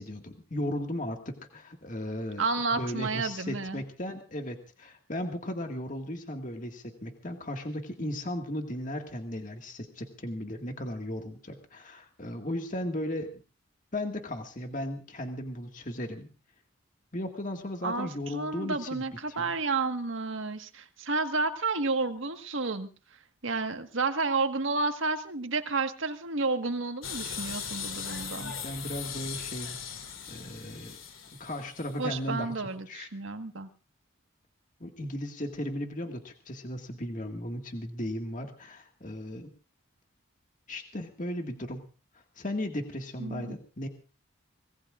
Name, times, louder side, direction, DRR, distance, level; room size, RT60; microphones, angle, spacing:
voice 1, 0.0-2.4 2.8-13.4 13.9-16.3 17.1-19.0 19.4-19.5 28.4-31.0 31.3-32.5 32.9-33.1 34.8-39.5 40.7-41.8 42.1-43.9, left 1 dB, 40° left, 4 dB, 1.9 m, -36 dB
voice 2, 2.4-3.8 17.8-22.9 23.4-28.5 32.0-33.7 43.2-43.5, right 3 dB, 75° right, 7 dB, 1.6 m, -31 dB
sound 1, 27.0-32.1, left 7 dB, 85° left, 3.2 m, -39 dB
24.5 x 19.5 x 2.5 m, 0.36 s
head